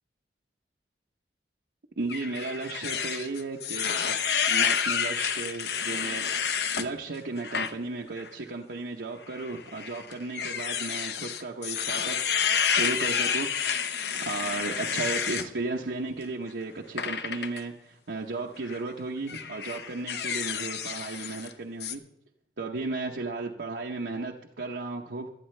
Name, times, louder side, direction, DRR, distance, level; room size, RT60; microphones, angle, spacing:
voice 1, 2.0-4.2 4.5-13.5 13.8-22.0 22.6-25.3, right 3 dB, 80° right, -1 dB, 0.8 m, -35 dB
sound 1, 2.1-6.9 7.4-7.7 8.2-8.3 9.3-15.5 17.0-17.6 18.6-18.8 19.3-21.5 21.8-22.0, left 7 dB, 70° left, 0.7 m, -29 dB
18.0 x 12.0 x 3.3 m, 0.85 s
head